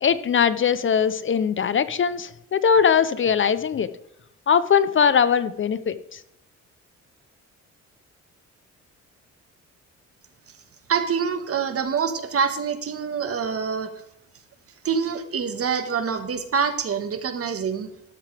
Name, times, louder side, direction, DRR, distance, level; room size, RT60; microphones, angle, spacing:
voice 1, 0.0-3.9 4.5-6.2, left 7 dB, 40° left, 15 dB, 0.7 m, -21 dB
voice 2, 10.9-13.9 14.8-17.9, right 6 dB, 50° right, 9 dB, 1.5 m, -25 dB
12.5 x 12.0 x 3.5 m, 0.79 s
cardioid pair, 90°, 30 cm